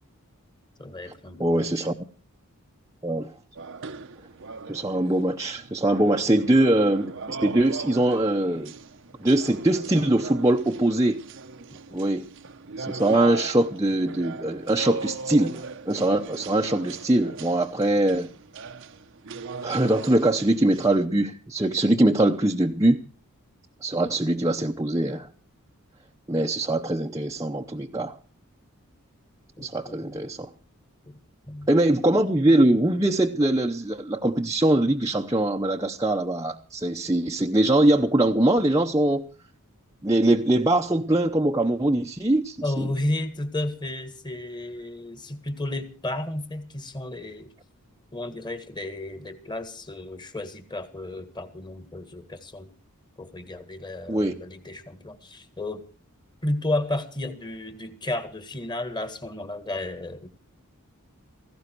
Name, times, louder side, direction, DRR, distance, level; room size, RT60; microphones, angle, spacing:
voice 1, 0.8-1.9 6.0-6.1 29.6-30.2 31.1-31.2 31.5-31.7 42.6-47.5 48.1-52.7 53.2-55.8 56.4-60.3, left 1 dB, 20° left, 1.8 m, -33 dB
voice 2, 1.4-1.9 3.0-3.3 4.7-8.7 9.2-11.2 11.9-12.3 12.8-18.3 19.6-23.0 23.8-25.3 26.3-28.2 29.6-30.5 31.7-39.3 40.0-42.9 54.1-54.4, right 1 dB, 15° right, 0.8 m, -22 dB
sound 1, 3.6-21.0, right 4 dB, 55° right, 0.9 m, -39 dB
18.0 x 15.5 x 4.6 m
head